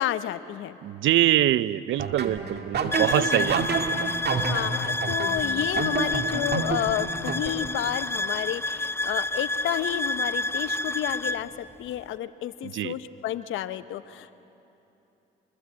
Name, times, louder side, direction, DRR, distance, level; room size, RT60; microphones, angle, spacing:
voice 1, 0.0-0.8 3.1-3.5 4.3-14.4, left 12 dB, 85° left, 13 dB, 0.8 m, -31 dB
voice 2, 0.8-4.2 12.6-13.0, right 13 dB, 80° right, 17 dB, 0.6 m, -24 dB
sound 1, 2.0-7.9, right 4 dB, 55° right, 2.0 m, -29 dB
sound 2, 2.9-11.4, left 2 dB, 10° left, 0.8 m, -29 dB
26.5 x 21.0 x 8.4 m, 2.9 s
cardioid pair, 80°, 20 cm